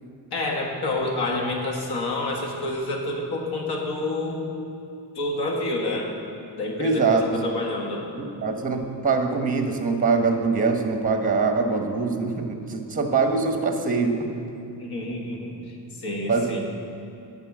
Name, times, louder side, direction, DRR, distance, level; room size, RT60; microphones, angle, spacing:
voice 1, 0.3-4.5 5.2-6.1 6.6-8.1 14.8-15.6 16.0-16.6, left 2 dB, 65° left, 0 dB, 1.7 m, -28 dB
voice 2, 6.8-7.3 8.2-14.4 16.3-16.6, right 4 dB, 20° right, 5 dB, 1.0 m, -23 dB
9.7 x 5.9 x 7.3 m, 2.8 s
cardioid pair, 125°, 42 cm